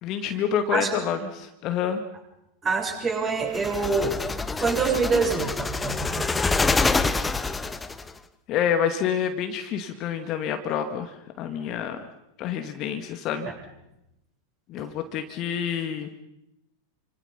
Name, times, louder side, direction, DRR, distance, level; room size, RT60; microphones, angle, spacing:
voice 1, 0.0-2.0 8.5-12.1 12.4-13.5 14.7-16.1, left 8 dB, 35° left, 7 dB, 2.2 m, -28 dB
voice 2, 2.6-4.2 4.6-6.6 13.5-13.6 14.8-14.9, right 4 dB, 20° right, 2 dB, 7.4 m, -26 dB
sound 1, 3.5-8.1, left 3 dB, 10° left, 1.3 m, -26 dB
29.5 x 26.0 x 5.7 m, 0.86 s
figure-of-eight pair, 90°, 0 cm